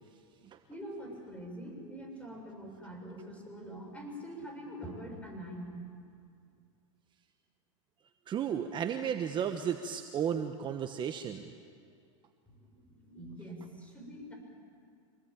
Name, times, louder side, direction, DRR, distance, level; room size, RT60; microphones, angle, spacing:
voice 1, 0.7-5.9 12.5-14.3, equal, 10° left, 1 dB, 7.1 m, -44 dB
voice 2, 8.3-11.4, right 8 dB, 30° right, 7 dB, 1.2 m, -33 dB
27.0 x 20.5 x 8.9 m, 2.2 s
hypercardioid pair, 120°, 16 cm